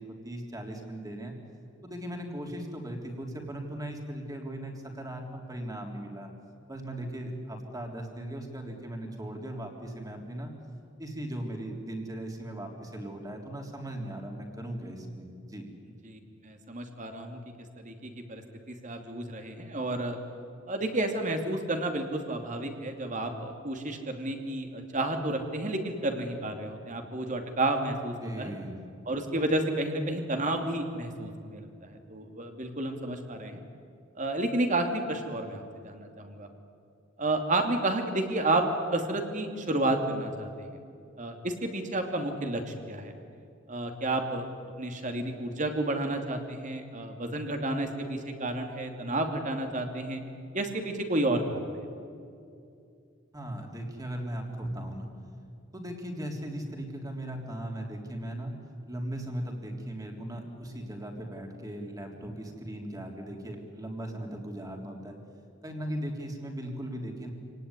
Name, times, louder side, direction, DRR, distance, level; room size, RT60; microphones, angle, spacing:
voice 1, 0.0-1.3 1.8-6.3 6.7-10.5 11.0-15.7 28.2-28.8 53.3-55.1 55.7-58.5 58.9-65.2 65.6-67.3, right 1 dB, 20° right, 2 dB, 3.6 m, -38 dB
voice 2, 16.0-17.4 17.8-18.4 18.7-20.2 20.7-28.5 29.1-33.6 34.2-36.5 37.2-40.5 41.2-43.1 43.7-44.4 44.8-50.2 50.5-51.8, right 2 dB, 40° right, 4 dB, 2.7 m, -31 dB
27.0 x 18.5 x 9.9 m, 2.5 s
head